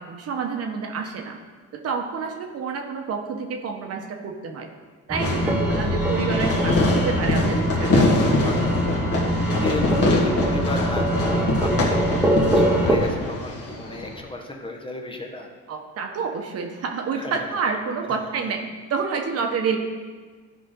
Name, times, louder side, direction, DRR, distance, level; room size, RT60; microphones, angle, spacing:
voice 1, 0.0-1.4 1.7-4.7 5.1-8.3 15.7-18.6 18.9-19.8, right 5 dB, 50° right, 3 dB, 1.1 m, -28 dB
sound 1, 5.1-13.0, right 1 dB, 5° right, 1.0 m, -23 dB
Fireworks, 5.2-14.2, left 2 dB, 50° left, 1.7 m, -24 dB
voice 2, 7.9-15.5 17.2-17.5, left 1 dB, 15° left, 2 dB, 0.9 m, -35 dB
12.5 x 5.0 x 3.8 m, 1.5 s
cardioid pair, 110°, 31 cm